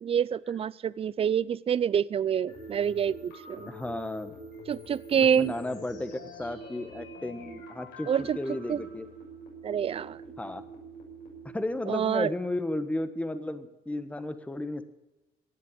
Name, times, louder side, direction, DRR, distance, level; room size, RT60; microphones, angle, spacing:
voice 1, 0.0-3.7 4.7-5.5 8.1-8.8 9.6-10.2 11.9-12.3, right 8 dB, 35° right, 20 dB, 0.5 m, -27 dB
sound 1, 2.5-11.8, right 1 dB, 80° left, 6.6 m, -46 dB
voice 2, 3.7-4.3 5.1-9.1 10.4-10.6 11.5-14.8, left 1 dB, 10° left, 10 dB, 1.2 m, -34 dB
17.5 x 7.5 x 8.5 m, 1.0 s
cardioid pair, 110°, 17 cm